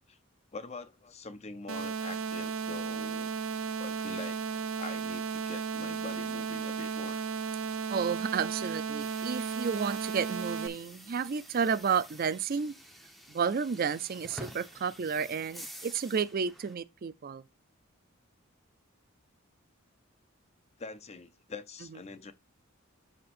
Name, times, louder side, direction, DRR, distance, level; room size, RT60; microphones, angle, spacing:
voice 1, 0.5-3.4 3.8-7.2 20.8-22.3, left 4 dB, 30° left, 0.6 m, -44 dB
sound 1, 1.7-10.7, right 6 dB, 75° right, 0.7 m, -34 dB
voice 2, 7.9-12.7 13.3-17.4, right 6 dB, 45° right, 0.4 m, -31 dB
sound 2, 9.0-16.7, equal, ahead, 1.0 m, -49 dB
12.5 x 4.3 x 2.5 m
head